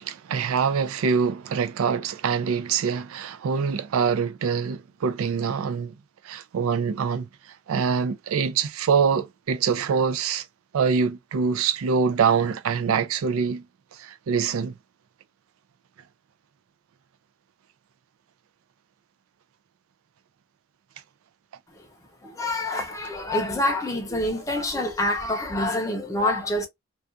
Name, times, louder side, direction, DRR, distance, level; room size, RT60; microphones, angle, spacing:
voice 1, 0.0-5.9 6.2-7.3 7.7-10.4 10.7-13.6 14.0-14.7, right 6 dB, 85° right, 0.4 m, -24 dB
voice 2, 22.2-26.7, left 1 dB, 15° left, 0.5 m, -26 dB
2.3 x 2.3 x 2.5 m
head